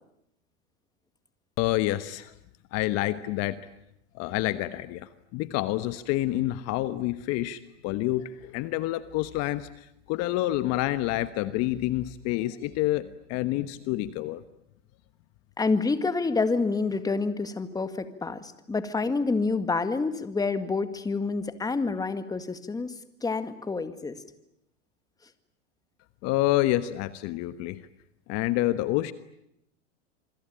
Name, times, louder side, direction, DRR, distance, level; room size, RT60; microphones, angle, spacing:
voice 1, 1.6-2.3 2.7-3.6 4.1-14.4 26.2-27.8 28.3-29.1, left 16 dB, 45° left, 13 dB, 1.3 m, -28 dB
voice 2, 15.6-22.9 23.2-24.2, left 4 dB, 10° left, 10 dB, 1.9 m, -28 dB
26.5 x 24.5 x 8.9 m, 0.80 s
hypercardioid pair, 115°, 36 cm